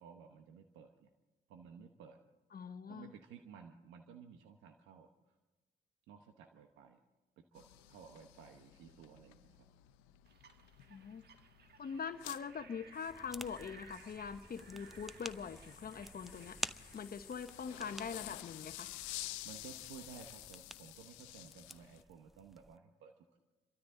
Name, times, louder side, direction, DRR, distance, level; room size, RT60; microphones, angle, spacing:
voice 1, 0.0-1.1 1.5-2.2 2.9-5.4 6.1-7.0 7.5-9.7 19.4-23.4, right 7 dB, 85° right, 5 dB, 1.0 m, -55 dB
voice 2, 2.5-3.1 10.9-11.2 11.8-18.9, left 6 dB, 50° left, 9 dB, 1.0 m, -43 dB
sound 1, 7.5-22.0, left 16 dB, 90° left, 0.6 m, -52 dB
sound 2, 10.2-17.8, right 7 dB, 60° right, 1.4 m, -61 dB
sound 3, 13.1-22.8, equal, ahead, 0.7 m, -50 dB
27.0 x 13.5 x 3.8 m, 1.1 s
hypercardioid pair, 45°, 19 cm